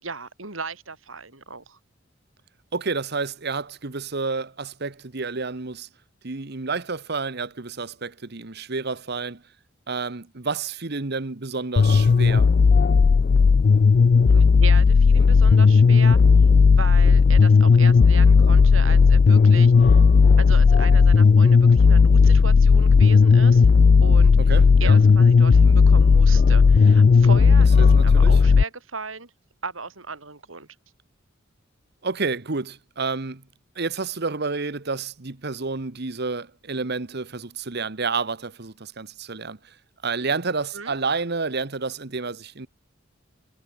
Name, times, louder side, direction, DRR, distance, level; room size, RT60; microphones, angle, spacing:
voice 1, 0.0-1.8 14.3-16.2 16.7-20.0 20.4-23.7 24.0-24.5 24.8-29.3 29.6-30.7 40.7-40.9, right 4 dB, 80° right, 4.0 m, -36 dB
voice 2, 2.7-5.9 6.2-9.4 9.9-12.5 24.4-25.0 27.8-28.4 32.0-33.4 33.7-39.7 40.0-42.7, right 4 dB, 55° right, 1.3 m, -30 dB
sound 1, 11.8-28.6, left 5 dB, 45° left, 0.3 m, -14 dB
head